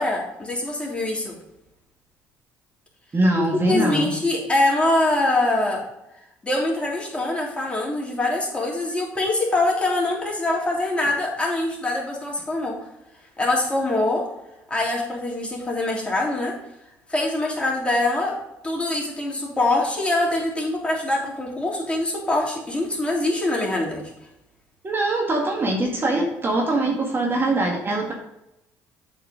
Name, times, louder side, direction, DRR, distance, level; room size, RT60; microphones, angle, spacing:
voice 1, 0.0-1.3 3.7-5.8 6.4-12.8 13.4-14.3 14.7-16.5 17.1-18.4 18.6-24.0, left 2 dB, 15° left, -3 dB, 3.1 m, -24 dB
voice 2, 3.1-4.2 24.8-28.1, right 2 dB, 30° right, 0 dB, 1.9 m, -22 dB
8.0 x 4.7 x 6.3 m, 0.88 s
supercardioid pair, 75°, 7 cm